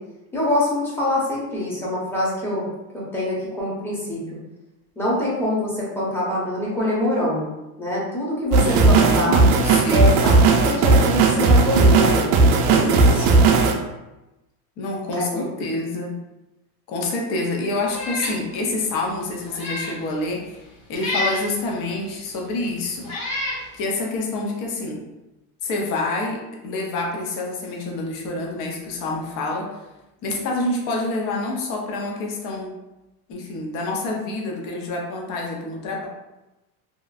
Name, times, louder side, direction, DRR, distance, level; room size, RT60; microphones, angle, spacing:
voice 1, 0.3-2.7 2.9-4.2 5.0-7.5 7.8-9.4 9.9-13.3 15.1-15.7, left 1 dB, 5° left, -7 dB, 0.8 m, -25 dB
sound 1, 8.5-13.7, right 3 dB, 65° right, 0.5 m, -16 dB
voice 2, 8.6-10.1 14.8-16.2 16.9-20.4 20.9-23.1 23.7-25.0 25.6-29.8 30.2-32.7 33.3-36.1, left 2 dB, 45° left, -1 dB, 0.7 m, -27 dB
Meow, 17.9-18.4 18.8-18.9 19.4-20.0 21.0-21.5 22.3-22.4 23.0-23.6, left 1 dB, 70° left, 1.0 m, -28 dB
2.8 x 2.5 x 2.4 m, 0.98 s
supercardioid pair, 135°, 43 cm